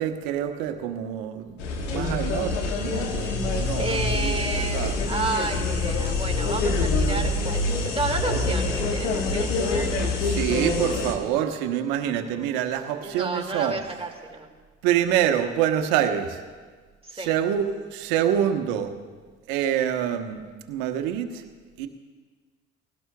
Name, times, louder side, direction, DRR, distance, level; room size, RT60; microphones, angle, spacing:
voice 1, 0.0-5.0 10.2-13.8 14.8-16.4 17.1-18.9 19.5-20.4 20.7-21.4 21.8-21.9, right 10 dB, 70° right, 7 dB, 1.1 m, -26 dB
sound 1, 1.6-11.1, left 3 dB, 85° left, 1.4 m, -26 dB
voice 2, 3.8-10.1 12.3-12.5 13.0-14.5 17.0-17.3, right 3 dB, 15° right, 2 dB, 2.1 m, -31 dB
20.5 x 16.5 x 2.3 m, 1.5 s
hypercardioid pair, 55°, 37 cm